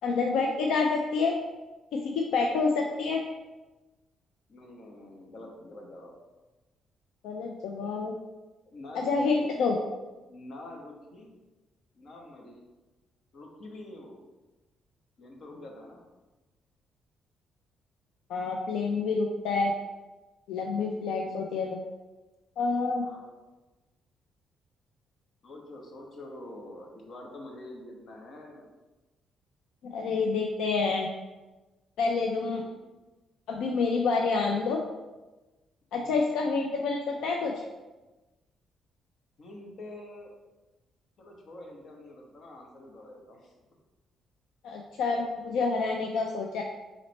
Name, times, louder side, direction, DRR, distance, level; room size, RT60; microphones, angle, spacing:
voice 1, 0.0-1.3 1.9-3.2 7.2-8.1 8.9-9.8 18.3-19.7 20.5-21.8 22.6-23.1 29.8-31.1 32.0-32.6 33.5-34.8 35.9-37.7 44.6-46.6, left 4 dB, 85° left, 1 dB, 0.4 m, -28 dB
voice 2, 2.4-3.1 4.5-6.1 8.6-9.5 10.3-11.3 11.9-12.7 13.3-14.2 15.2-16.0 21.1-21.4 23.0-23.3 25.4-28.7 32.4-32.8 35.9-36.2 39.4-40.3 41.2-43.5, left 1 dB, 55° left, 1 dB, 1.0 m, -46 dB
4.0 x 3.2 x 4.0 m, 1.1 s
cardioid pair, 90°, 0 cm